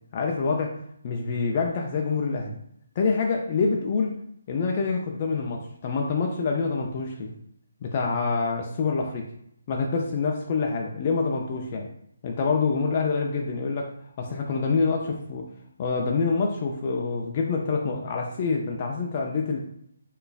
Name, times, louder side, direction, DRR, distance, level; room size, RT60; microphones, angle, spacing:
voice 1, 0.1-0.8 1.0-2.6 3.0-4.2 4.5-7.3 7.8-9.3 9.7-11.9 12.2-15.5 15.8-19.6, left 4 dB, 30° left, 1 dB, 0.4 m, -26 dB
3.9 x 3.1 x 2.3 m, 0.73 s
figure-of-eight pair, 145°, 0 cm